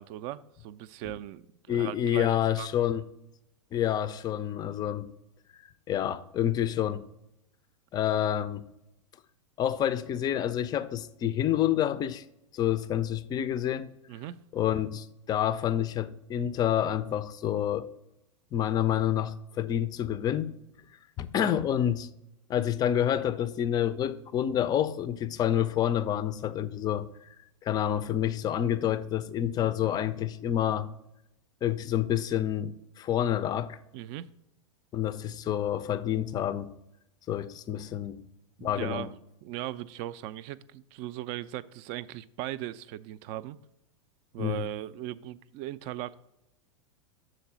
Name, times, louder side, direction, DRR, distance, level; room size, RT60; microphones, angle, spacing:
voice 1, 0.0-2.7 14.1-14.4 21.4-21.6 33.9-34.3 38.6-43.6 44.3-46.2, right 13 dB, 40° right, 0.4 m, -38 dB
voice 2, 1.7-3.0 3.7-5.1 5.9-7.1 7.9-8.7 9.6-12.2 12.5-13.9 14.5-17.9 18.5-20.5 21.2-22.1 22.5-27.1 27.6-30.9 31.6-33.8 34.9-36.7 37.3-38.2 38.6-39.1 44.4-44.7, left 10 dB, 25° left, 0.4 m, -28 dB
6.4 x 4.0 x 5.7 m
hypercardioid pair, 100°, 16 cm